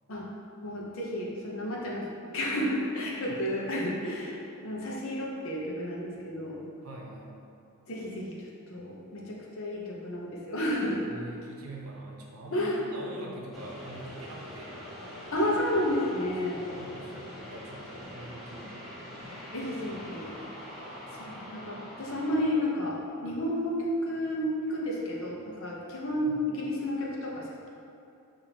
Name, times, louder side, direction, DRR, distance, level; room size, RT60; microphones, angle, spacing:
voice 1, 0.6-6.6 7.9-11.0 12.5-12.8 15.3-16.6 19.5-20.3 21.1-27.7, left 1 dB, 65° left, -3 dB, 0.8 m, -31 dB
voice 2, 6.8-7.4 11.1-14.8 16.6-18.9 19.9-20.3 26.2-26.4, right 1 dB, 75° right, -2 dB, 0.7 m, -44 dB
sound 1, 13.5-23.8, equal, ahead, 0.8 m, -44 dB
7.0 x 2.7 x 2.8 m, 2.7 s
head